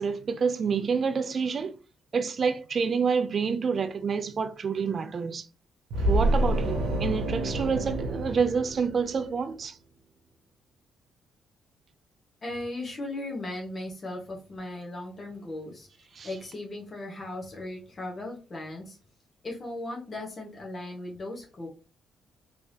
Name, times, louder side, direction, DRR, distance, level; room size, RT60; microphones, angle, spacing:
voice 1, 0.0-1.8 2.1-5.5 6.1-9.8 16.1-16.3, right 5 dB, 45° right, 0.3 m, -28 dB
sound 1, 5.9-9.4, right 1 dB, 85° right, 0.9 m, -28 dB
voice 2, 12.4-19.0 19.4-21.7, left 2 dB, 40° left, 1.1 m, -37 dB
3.4 x 3.3 x 2.7 m
cardioid pair, 90°, 0 cm